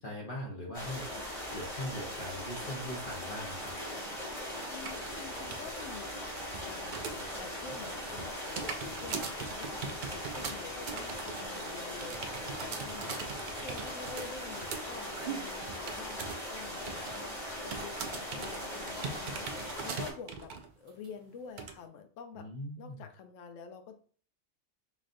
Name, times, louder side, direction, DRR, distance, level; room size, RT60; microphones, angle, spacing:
voice 1, 0.0-1.0 1.5-3.7 22.3-23.0, left 1 dB, 45° left, -3 dB, 0.9 m, -40 dB
sound 1, 0.7-20.1, equal, 25° left, 1.4 m, -40 dB
voice 2, 4.7-6.3 6.6-22.5 22.8-24.0, left 6 dB, 75° left, 6 dB, 0.9 m, -48 dB
sound 2, 4.8-5.7 6.0-7.4 7.7-16.5 16.7-17.3 17.7-20.7 21.0-21.1 21.6-21.7, right 5 dB, 75° right, 0.4 m, -41 dB
5.0 x 2.5 x 2.5 m, 0.44 s
omnidirectional pair, 1.4 m